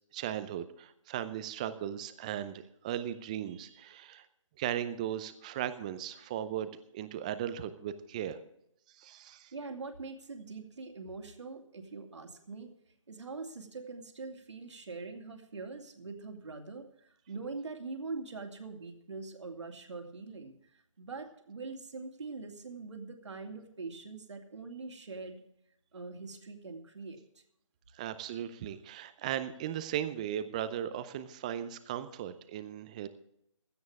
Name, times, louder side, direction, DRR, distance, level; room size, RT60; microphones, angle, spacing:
voice 1, 0.1-4.3 4.6-8.4 8.9-9.5 27.9-33.1, right 10 dB, 15° right, 13 dB, 0.6 m, -37 dB
voice 2, 9.5-12.7 13.1-25.4 25.9-27.4, right 3 dB, 60° right, 5 dB, 2.5 m, -43 dB
16.0 x 13.5 x 3.6 m, 0.73 s
figure-of-eight pair, 155°, 17 cm